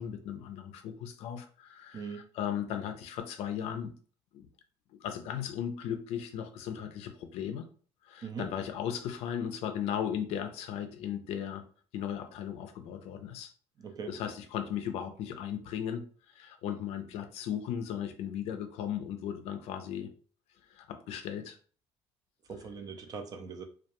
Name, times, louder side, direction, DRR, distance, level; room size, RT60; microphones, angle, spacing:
voice 1, 0.0-3.9 4.3-4.5 5.0-7.7 8.0-11.6 11.9-13.5 14.1-20.1 20.7-21.6, left 9 dB, 70° left, 7 dB, 0.4 m, -36 dB
voice 2, 1.9-2.2 8.2-8.5 13.8-14.1 22.5-23.6, right 5 dB, 35° right, 6 dB, 0.4 m, -41 dB
2.3 x 2.2 x 2.8 m, 0.43 s
cardioid pair, 140°, 11 cm